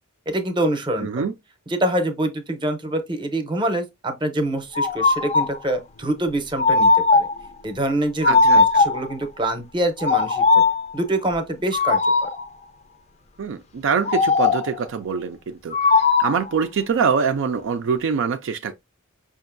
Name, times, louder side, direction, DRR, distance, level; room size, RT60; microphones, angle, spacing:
voice 1, 0.3-1.2 1.7-7.3 7.6-10.6 10.9-12.3, right 1 dB, 20° right, 0.7 m, -25 dB
voice 2, 1.0-1.3 8.2-8.8 13.4-15.8 16.2-18.7, right 6 dB, 60° right, 0.4 m, -24 dB
sound 1, 4.8-5.6 6.6-7.5 8.2-9.1 10.0-10.9 11.7-12.4 14.1-14.8 15.7-16.5, left 4 dB, 30° left, 0.4 m, -18 dB
5.3 x 2.5 x 2.5 m
head